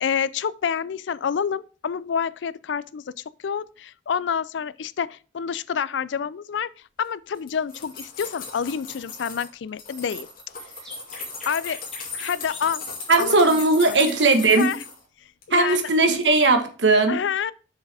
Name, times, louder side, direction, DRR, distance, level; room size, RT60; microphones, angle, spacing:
voice 1, 0.0-3.1 3.4-6.7 7.0-10.3 11.5-11.8 12.1-12.9 13.2-13.6 13.9-14.0 14.5-14.8 15.5-15.8 17.1-17.5, left 7 dB, 75° left, 0.4 m, -28 dB
sound 1, 7.3-9.5 9.8-15.0 15.4-16.0 16.2-16.3, left 4 dB, 50° left, 2.5 m, -37 dB
sound 2, 10.8-14.4, left 1 dB, 5° left, 3.1 m, -44 dB
voice 2, 13.1-14.7 15.5-17.2, right 3 dB, 75° right, 1.4 m, -18 dB
7.1 x 6.5 x 3.4 m
head